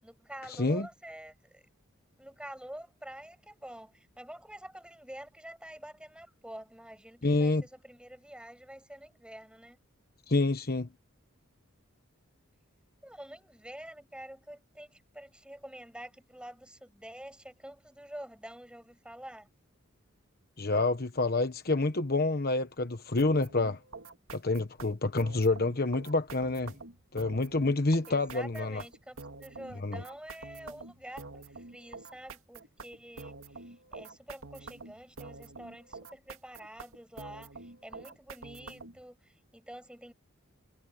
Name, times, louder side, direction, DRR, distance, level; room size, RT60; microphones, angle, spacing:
voice 1, 0.0-1.6 2.2-9.8 13.0-19.5 28.1-40.1, right 1 dB, 5° right, 6.0 m, -47 dB
voice 2, 7.2-7.6 10.3-10.9 20.6-23.8 24.3-26.7 27.1-28.8 29.8-30.0, left 2 dB, 50° left, 1.2 m, -28 dB
sound 1, 23.2-39.0, right 3 dB, 80° right, 2.4 m, -47 dB
head